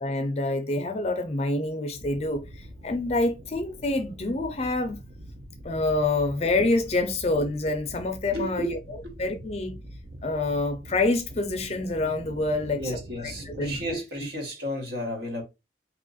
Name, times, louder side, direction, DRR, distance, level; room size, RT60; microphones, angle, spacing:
voice 1, 0.0-5.0 5.6-8.8 9.2-9.7 10.2-12.8 13.4-13.8, left 2 dB, 35° left, 0.4 m, -27 dB
sound 1, 1.9-13.9, right 1 dB, 45° right, 0.6 m, -44 dB
voice 2, 8.3-8.7 12.7-15.4, equal, 65° right, 1.3 m, -32 dB
2.9 x 2.4 x 3.9 m
head